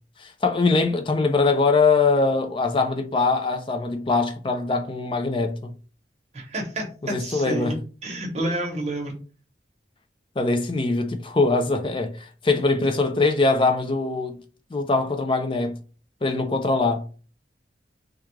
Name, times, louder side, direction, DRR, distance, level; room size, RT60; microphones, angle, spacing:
voice 1, 0.2-5.7 7.0-7.8 10.4-14.4 14.7-15.8 16.2-17.1, left 3 dB, 30° left, 0.4 m, -22 dB
voice 2, 6.3-7.7 8.0-9.2, right 1 dB, 35° right, 0.9 m, -29 dB
3.5 x 2.3 x 3.1 m
head